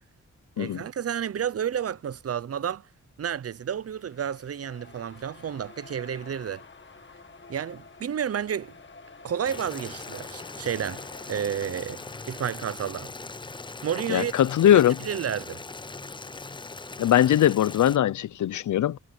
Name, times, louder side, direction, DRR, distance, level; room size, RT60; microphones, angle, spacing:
voice 1, 0.6-2.9 3.2-6.6 7.5-8.7 9.2-11.0 11.3-13.1 13.8-14.3 14.7-15.6, right 8 dB, 55° right, 0.7 m, -31 dB
sound 1, 3.4-13.2, left 4 dB, 40° left, 1.7 m, -50 dB
Boiling, 9.5-18.0, left 3 dB, 15° left, 0.5 m, -40 dB
voice 2, 14.1-15.0 17.0-19.0, left 11 dB, 80° left, 0.6 m, -20 dB
wide cardioid pair, 105°, 29 cm